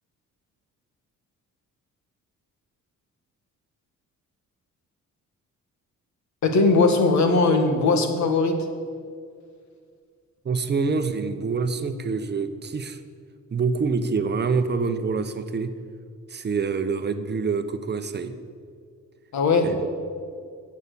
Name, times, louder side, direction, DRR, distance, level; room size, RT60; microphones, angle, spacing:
voice 1, 6.4-8.7 19.3-19.8, left 3 dB, 65° left, 6 dB, 1.7 m, -20 dB
voice 2, 10.4-13.0 13.5-15.7 16.3-18.4 19.6-19.9, right 4 dB, 35° right, 9 dB, 0.8 m, -26 dB
11.0 x 7.3 x 8.3 m, 2.2 s
cardioid pair, 90°, 30 cm